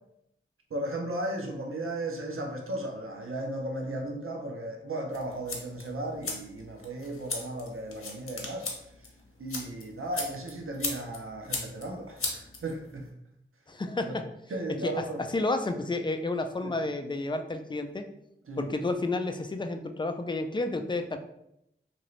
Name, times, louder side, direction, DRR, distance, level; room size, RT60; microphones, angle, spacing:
voice 1, 0.7-8.7 9.4-13.1 14.0-14.1 14.5-15.2 16.6-16.8 18.5-18.7, right 1 dB, 90° right, 2 dB, 0.5 m, -35 dB
sound 1, 5.1-13.1, left 3 dB, 90° left, 0.6 m, -38 dB
voice 2, 13.7-14.3 14.8-18.1 18.6-21.2, left 2 dB, 20° left, 6 dB, 0.3 m, -31 dB
2.9 x 2.6 x 3.0 m, 0.79 s
wide cardioid pair, 50°, 21 cm